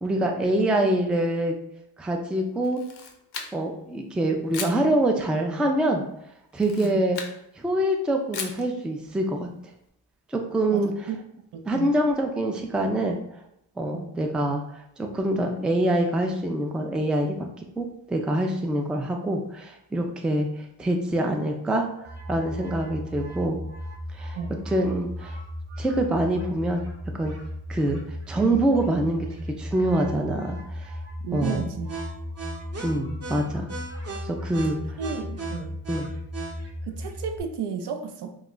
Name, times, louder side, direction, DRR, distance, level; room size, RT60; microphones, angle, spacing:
voice 1, 0.0-1.6 2.0-2.8 3.5-6.0 6.5-7.2 7.6-9.5 10.3-11.1 11.7-13.2 13.8-17.4 17.8-21.9 22.3-23.6 24.1-24.4 24.7-25.4 25.8-26.9 27.1-27.3 27.7-28.0 28.3-29.3 29.6-30.9 31.3-31.7 32.8-33.7 34.2-34.8 35.9-36.1, right 1 dB, ahead, 3 dB, 0.3 m, -25 dB
Camera, 2.6-3.8 4.5-4.8 6.5-7.4 8.3-8.7, left 6 dB, 65° left, 0.6 m, -36 dB
voice 2, 10.7-11.2 11.5-11.9 13.9-14.1 24.3-24.6 31.2-31.9 35.0-35.8 36.9-38.4, right 6 dB, 70° right, 6 dB, 0.5 m, -33 dB
sound 1, 22.0-37.4, equal, 35° right, 0.8 m, -35 dB
2.3 x 2.1 x 3.7 m, 0.77 s
cardioid pair, 65°, 42 cm